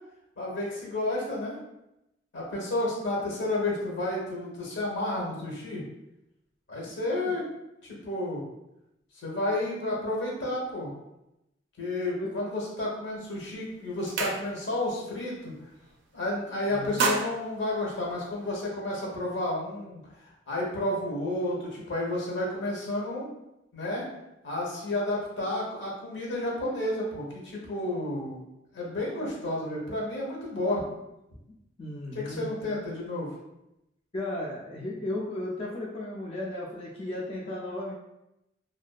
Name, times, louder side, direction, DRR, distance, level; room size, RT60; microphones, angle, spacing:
voice 1, 0.4-1.6 2.3-5.8 6.7-7.4 7.8-8.4 9.1-10.9 11.8-15.5 16.1-23.3 23.7-24.0 24.4-28.4 28.7-30.8 32.1-33.3, left 1 dB, 80° left, -3 dB, 0.8 m, -31 dB
sound 1, 13.2-13.4 13.7-14.9 15.2-15.5 15.8-16.4 16.7-18.6, right 3 dB, 75° right, 0.4 m, -32 dB
voice 2, 16.7-17.0 31.8-32.7 34.1-37.9, left 1 dB, 30° left, -4 dB, 0.3 m, -35 dB
2.5 x 2.2 x 2.3 m, 0.89 s
head